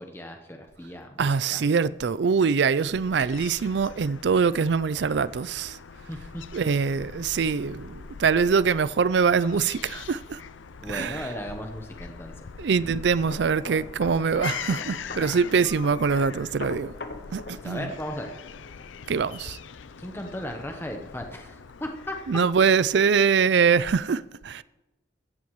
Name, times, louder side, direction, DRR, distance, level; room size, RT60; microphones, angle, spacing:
voice 1, 0.0-1.6 6.1-6.4 10.8-12.5 15.2-15.4 17.5-18.3 20.0-22.2, left 1 dB, 10° left, 0.9 m, -36 dB
voice 2, 1.2-5.8 6.5-10.4 10.9-11.3 12.6-16.9 17.3-17.9 19.1-19.6 22.3-24.6, right 5 dB, 65° right, 0.4 m, -23 dB
Fowl / Gull seagull, 2.9-22.8, left 6 dB, 85° left, 0.5 m, -42 dB
sound 1, 13.2-20.7 21.0-21.3, left 3 dB, 55° left, 0.9 m, -42 dB
17.0 x 13.5 x 3.1 m
head